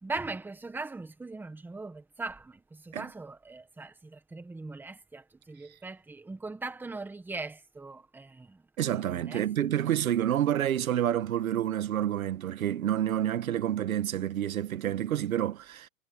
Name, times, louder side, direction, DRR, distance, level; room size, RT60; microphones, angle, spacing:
voice 1, 0.0-8.6 8.9-9.5, right 3 dB, 5° right, 1.6 m, -40 dB
voice 2, 8.8-15.9, right 11 dB, 85° right, 1.6 m, -28 dB
hypercardioid pair, 145°, 41 cm